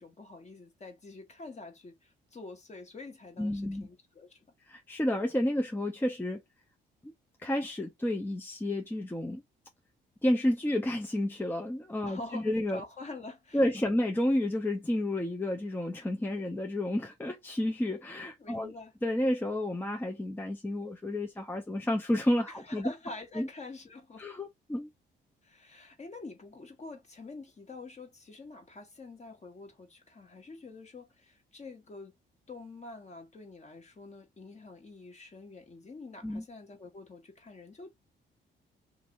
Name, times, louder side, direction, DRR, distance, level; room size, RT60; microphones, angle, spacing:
voice 1, 0.0-4.5 12.0-13.6 18.4-18.9 22.5-24.3 25.4-32.2 32.5-37.9, left 3 dB, 35° left, 1.3 m, -46 dB
voice 2, 3.4-3.9 4.7-6.4 7.0-7.1 7.4-9.4 10.2-12.8 13.5-18.7 19.0-22.9 23.4-23.5 24.2-24.9 36.2-36.4, left 1 dB, 10° left, 0.6 m, -30 dB
2.6 x 2.6 x 2.9 m
cardioid pair, 90°, 20 cm